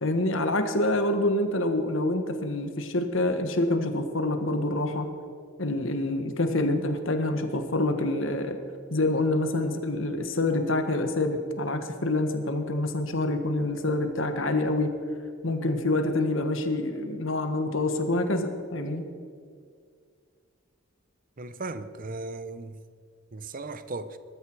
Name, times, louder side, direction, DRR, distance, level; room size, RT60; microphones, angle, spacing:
voice 1, 0.0-5.1 5.6-8.6 8.9-14.9 15.4-19.1, left 2 dB, 70° left, 7 dB, 1.5 m, -26 dB
voice 2, 21.4-22.8 23.3-24.2, right 3 dB, 45° right, 12 dB, 0.8 m, -37 dB
20.0 x 13.0 x 4.7 m, 2.2 s
head